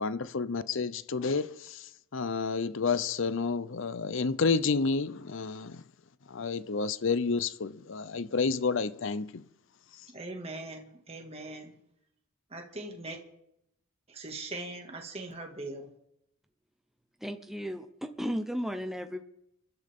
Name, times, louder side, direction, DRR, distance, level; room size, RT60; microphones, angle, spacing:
voice 1, 0.0-5.8 6.3-9.4, left 4 dB, 60° left, 0.6 m, -30 dB
voice 2, 10.1-11.7 12.5-13.2 14.1-15.9, right 2 dB, 30° right, 2.0 m, -41 dB
voice 3, 17.2-19.2, equal, ahead, 0.8 m, -35 dB
28.5 x 12.0 x 3.7 m
head